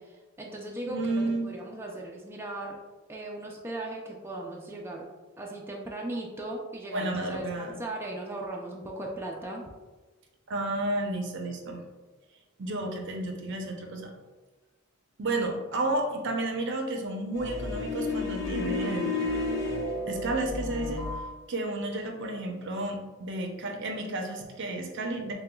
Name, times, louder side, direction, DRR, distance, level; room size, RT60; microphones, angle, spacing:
voice 1, 0.0-2.8 3.1-5.1 5.4-9.6, right 2 dB, 10° right, -2 dB, 0.4 m, -38 dB
voice 2, 0.9-1.5 6.9-7.8 10.5-11.8 12.6-14.1 15.2-19.1 20.1-21.1 21.5-25.3, right 2 dB, 60° right, 3 dB, 0.6 m, -31 dB
sound 1, 17.3-21.3, left 2 dB, 55° left, 0.9 m, -31 dB
6.7 x 2.2 x 2.2 m, 1.2 s
head